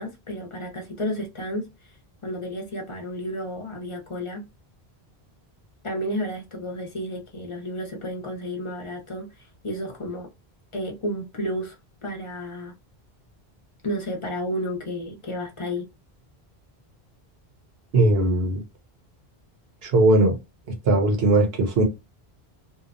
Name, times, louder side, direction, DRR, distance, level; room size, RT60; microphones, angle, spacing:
voice 1, 0.0-1.9 2.2-4.4 5.8-10.3 10.7-12.7 13.8-15.9, equal, 35° left, 0.7 m, -32 dB
voice 2, 17.9-18.6 19.8-20.4 20.8-21.8, right 2 dB, 75° right, 1.0 m, -19 dB
2.8 x 2.2 x 2.5 m
omnidirectional pair, 1.0 m